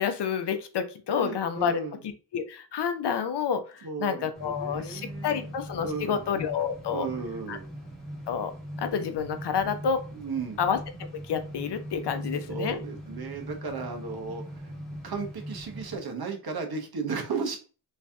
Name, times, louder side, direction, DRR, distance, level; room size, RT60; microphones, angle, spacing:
voice 1, 0.0-1.8 2.3-7.1 7.5-7.6 8.3-8.5 8.8-10.1 10.6-10.8 11.3-12.8, left 7 dB, 75° left, 10 dB, 0.7 m, -29 dB
voice 2, 1.1-2.0 3.8-6.4 6.9-7.7 10.1-10.6 12.1-14.7 15.0-17.6, right 4 dB, 60° right, 3 dB, 1.0 m, -35 dB
sound 1, 4.3-16.0, equal, ahead, 1.1 m, -41 dB
3.2 x 2.7 x 3.4 m, 0.36 s
wide cardioid pair, 145°, 41 cm